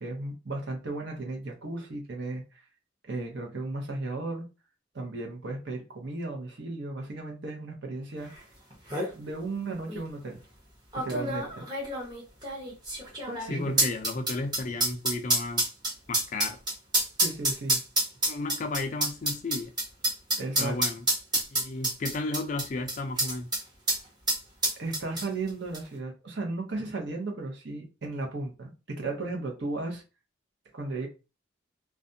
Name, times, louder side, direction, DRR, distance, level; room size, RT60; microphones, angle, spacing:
voice 1, 0.0-2.6 3.1-4.5 4.9-8.3 9.1-10.4 11.0-11.6 13.3-13.8 17.2-17.8 20.4-20.8 24.8-30.0 30.7-31.1, right 2 dB, 60° right, 0.8 m, -35 dB
sound 1, 8.4-8.5 8.7-9.1 9.9-10.0 10.9-23.6 23.9-24.0 24.3-25.5 25.7-25.8, right 1 dB, 20° right, 0.8 m, -28 dB
voice 2, 13.5-15.7 16.1-16.6 18.3-19.7 20.6-21.1 21.5-23.5, left 3 dB, 40° left, 0.3 m, -33 dB
2.5 x 2.1 x 2.6 m
head